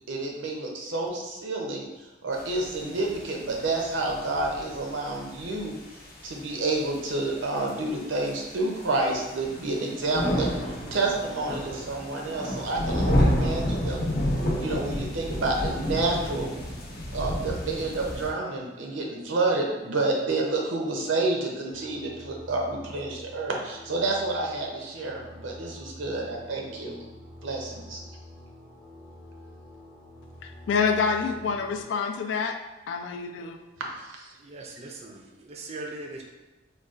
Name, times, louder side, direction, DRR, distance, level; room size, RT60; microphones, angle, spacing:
voice 1, 0.1-1.8 2.2-5.7 6.2-10.5 10.9-14.1 14.6-16.5 17.1-27.0 27.4-28.0 34.0-34.3, right 2 dB, 90° right, 0 dB, 0.6 m, -29 dB
sound 1, 2.3-18.3, equal, 55° left, 0.7 m, -30 dB
sound 2, 21.7-31.8, left 1 dB, 10° left, 0.7 m, -47 dB
voice 2, 30.4-32.6 32.9-33.6, left 5 dB, 75° left, 6 dB, 0.3 m, -27 dB
voice 3, 34.4-36.2, right 2 dB, 35° right, 2 dB, 0.4 m, -40 dB
3.9 x 2.2 x 2.4 m, 1.1 s
head